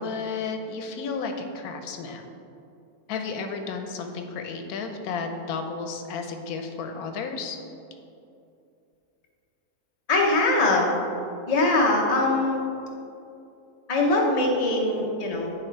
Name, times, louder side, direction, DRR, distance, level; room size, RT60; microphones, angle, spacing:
voice 1, 0.0-2.2 3.1-7.6, left 4 dB, 90° left, 5 dB, 1.1 m, -32 dB
voice 2, 10.1-10.9 11.5-12.6 13.9-15.5, left 2 dB, 30° left, -1 dB, 0.8 m, -22 dB
9.2 x 3.6 x 4.5 m, 2.6 s
omnidirectional pair, 1.6 m